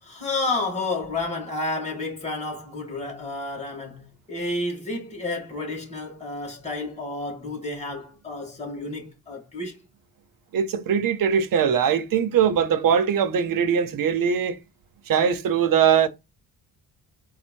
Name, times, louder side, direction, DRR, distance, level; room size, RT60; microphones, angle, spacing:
voice 1, 0.0-9.8, left 2 dB, 15° left, 2.5 m, -31 dB
voice 2, 10.5-14.6 15.1-16.1, right 7 dB, 60° right, 0.8 m, -21 dB
4.3 x 2.2 x 4.5 m
cardioid pair, 110°, 38 cm